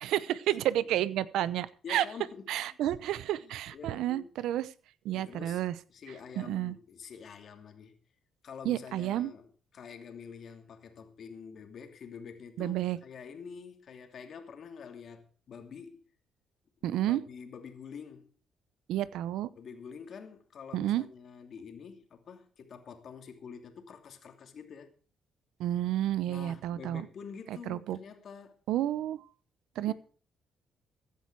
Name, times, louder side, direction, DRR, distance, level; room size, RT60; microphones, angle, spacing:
voice 1, 0.0-2.0 2.5-4.7 5.0-5.7 6.4-6.7 8.6-9.3 12.6-13.0 16.8-17.2 18.9-19.5 20.7-21.0 25.6-27.1 27.5-28.0 28.7-29.3 29.8-29.9, right 13 dB, 85° right, 0.8 m, -30 dB
voice 2, 1.8-2.5 3.4-4.5 5.1-8.0 8.4-9.5 9.7-16.0 16.8-18.4 19.5-24.9 26.3-28.6 29.8-29.9, left 6 dB, 60° left, 2.7 m, -47 dB
15.5 x 10.5 x 4.7 m
cardioid pair, 90°, 0 cm